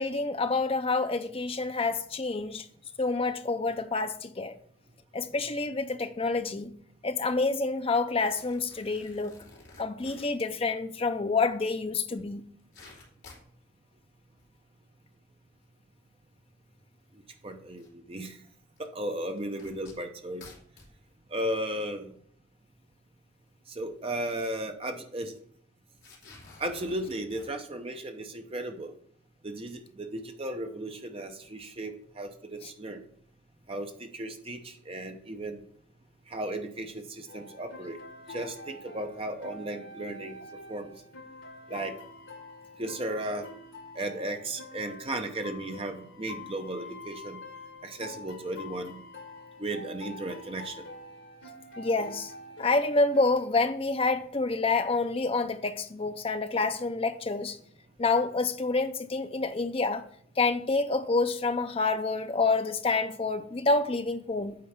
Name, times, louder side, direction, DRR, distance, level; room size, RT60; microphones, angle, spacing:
voice 1, 0.0-2.7 3.0-4.5 5.1-6.7 7.0-9.4 9.8-12.4 51.8-52.3 52.6-57.6 58.0-60.0 60.4-64.6, left 3 dB, 25° left, 0.5 m, -28 dB
sound 1, 8.3-10.4 11.7-11.8 12.1-12.2 12.5-13.5 14.2-14.5 15.2-15.3 16.3-16.4 17.8-17.9 18.8-18.9 19.3-20.9 21.7-21.8 22.0-22.1 23.8-24.0 24.3-24.4 24.6-24.8 25.3-25.4 25.9-27.5, left 3 dB, 55° left, 3.1 m, -52 dB
voice 2, 17.4-18.4 18.8-20.5 21.3-22.1 23.7-25.4 26.6-28.9 29.4-33.0 33.7-35.6 36.3-38.0 38.3-40.4 40.7-40.9 41.7-41.9 42.8-43.4 43.9-47.4 47.8-49.0 49.6-50.8, right 1 dB, 25° right, 0.7 m, -35 dB
sound 2, 37.3-53.5, left 2 dB, 75° left, 2.0 m, -46 dB
8.7 x 4.6 x 5.9 m
head